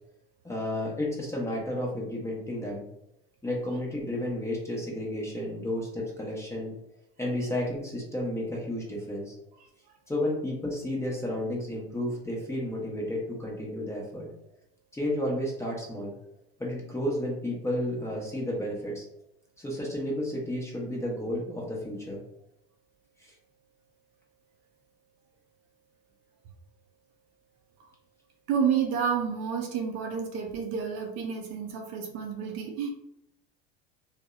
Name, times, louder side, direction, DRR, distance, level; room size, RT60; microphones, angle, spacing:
voice 1, 0.4-2.9 3.4-6.7 7.2-9.3 10.1-14.3 14.9-16.1 16.6-19.0 19.6-22.2 23.2-23.3, left 1 dB, 10° left, -2 dB, 0.7 m, -32 dB
voice 2, 28.5-32.9, right 7 dB, 55° right, 2 dB, 0.5 m, -30 dB
2.6 x 2.0 x 2.3 m, 0.76 s
hypercardioid pair, 85°, 31 cm